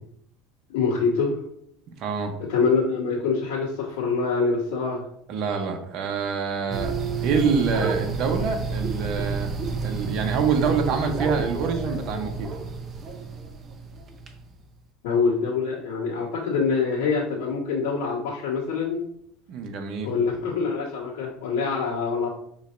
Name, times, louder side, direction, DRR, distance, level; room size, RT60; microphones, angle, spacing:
voice 1, 0.7-1.4 2.5-5.0 15.0-19.0 20.0-22.3, left 5 dB, 80° left, -10 dB, 1.6 m, -25 dB
voice 2, 2.0-2.3 5.3-7.0 7.2-9.5 9.8-12.5 19.5-20.1, right 5 dB, 50° right, 4 dB, 0.9 m, -26 dB
sound 1, 6.7-14.3, right 4 dB, 25° right, 0.6 m, -30 dB
6.2 x 3.1 x 2.6 m, 0.72 s
supercardioid pair, 130°, 0 cm